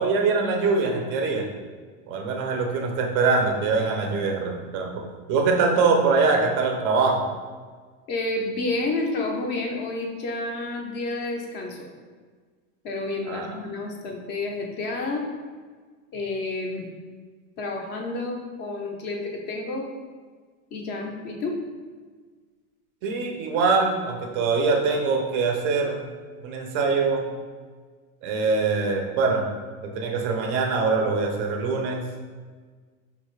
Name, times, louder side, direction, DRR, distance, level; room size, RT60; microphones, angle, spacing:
voice 1, 0.0-1.5 2.1-7.2 13.3-13.6 23.0-26.0 26.4-27.3 28.2-29.5 29.8-32.0, right 4 dB, 30° right, 2 dB, 0.4 m, -23 dB
voice 2, 8.1-11.9 12.8-15.3 16.1-16.9 17.6-19.8 20.7-21.6, left 2 dB, 25° left, 1 dB, 0.4 m, -30 dB
5.1 x 2.3 x 3.1 m, 1.5 s
supercardioid pair, 150°, 41 cm